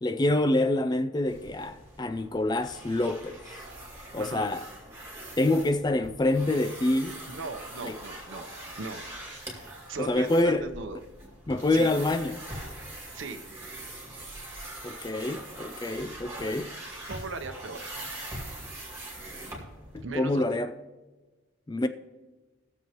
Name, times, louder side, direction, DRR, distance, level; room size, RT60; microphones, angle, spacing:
voice 1, 0.0-3.4 4.1-4.7 5.4-7.2 7.8-8.0 10.0-10.7 11.5-12.4 14.8-16.7 19.9-20.7 21.7-21.9, left 2 dB, 20° left, 0.3 m, -26 dB
sound 1, 1.3-20.0, right 1 dB, 15° right, 2.3 m, -42 dB
voice 2, 4.2-4.5 7.3-8.5 8.8-9.0 9.7-11.0 11.7-11.9 13.1-13.4 17.1-17.8 20.0-20.4, right 4 dB, 70° right, 0.8 m, -38 dB
19.5 x 7.1 x 3.0 m
head